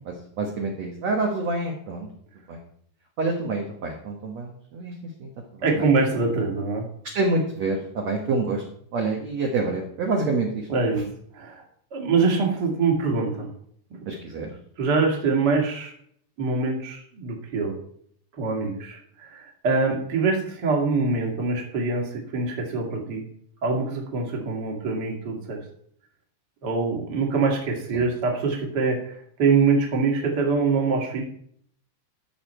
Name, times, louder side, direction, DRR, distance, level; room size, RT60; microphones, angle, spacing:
voice 1, 0.1-2.1 2.5-2.6 3.2-4.9 5.2-5.9 7.1-8.6 8.9-10.7 14.1-14.5 27.9-28.0, right 3 dB, 55° right, -1 dB, 2.1 m, -27 dB
voice 2, 5.6-6.9 10.7-11.0 11.3-11.6 11.9-13.5 13.9-14.0 14.8-15.9 16.4-17.7 18.4-23.2 23.6-25.6 26.6-31.2, right 4 dB, 35° right, 0 dB, 2.2 m, -24 dB
13.0 x 6.7 x 4.4 m, 0.64 s
omnidirectional pair, 4.4 m